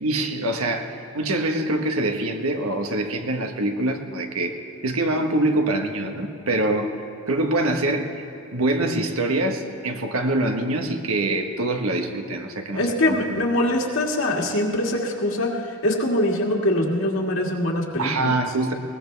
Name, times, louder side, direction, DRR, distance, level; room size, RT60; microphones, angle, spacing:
voice 1, 0.0-4.6 4.8-6.9 7.3-8.2 8.5-13.4 18.0-18.7, right 2 dB, 85° right, 5 dB, 1.3 m, -24 dB
voice 2, 12.7-18.4, left 1 dB, 70° left, -1 dB, 2.1 m, -23 dB
21.0 x 19.5 x 3.4 m, 3.0 s
head